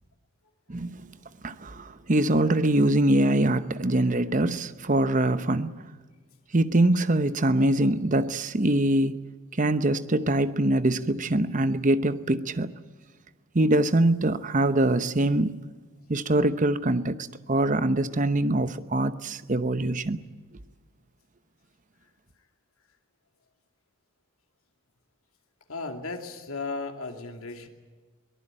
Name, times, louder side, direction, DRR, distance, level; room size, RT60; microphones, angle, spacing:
voice 1, 0.7-1.0 1.4-5.7 6.5-9.2 9.6-12.7 13.5-15.6 16.1-20.2, right 1 dB, 35° right, 0.9 m, -23 dB
voice 2, 25.7-27.7, left 3 dB, 85° left, 2.5 m, -35 dB
23.0 x 19.0 x 8.9 m
head